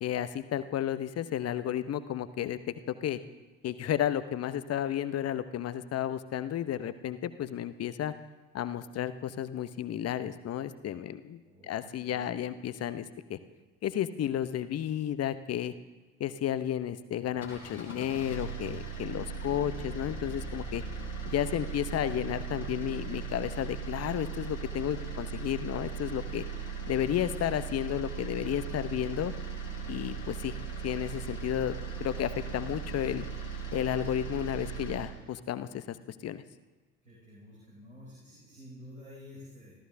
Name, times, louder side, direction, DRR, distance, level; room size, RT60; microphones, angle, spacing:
voice 1, 0.0-3.2 3.6-8.1 8.5-13.4 13.8-15.7 16.2-20.8 21.2-26.4 26.9-29.3 29.9-30.5 30.8-33.3 33.7-36.0 36.2-36.4, left 10 dB, 40° left, 13 dB, 0.9 m, -32 dB
voice 2, 11.4-12.5 37.0-39.7, left 1 dB, 90° right, -9 dB, 4.2 m, -51 dB
sound 1, 17.2-35.1, right 5 dB, 85° left, 3.2 m, -38 dB
27.0 x 14.5 x 2.7 m, 1.3 s
figure-of-eight pair, 55°, 40 cm